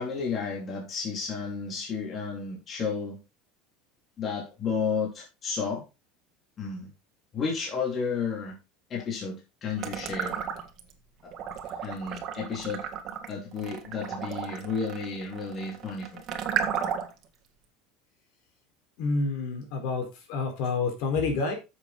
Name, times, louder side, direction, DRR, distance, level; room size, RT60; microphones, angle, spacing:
voice 1, 0.0-3.2 4.2-5.8 6.6-6.9 7.3-8.6 8.9-10.4 11.2-11.3 11.8-12.8 13.3-16.2, left 5 dB, 30° left, -1 dB, 3.0 m, -32 dB
sound 1, 9.8-10.9 11.3-17.2, right 8 dB, 40° right, 1.8 m, -33 dB
voice 2, 19.0-21.5, left 4 dB, 65° left, 3 dB, 4.2 m, -28 dB
9.1 x 7.4 x 4.1 m, 0.27 s
cardioid pair, 145°, 0 cm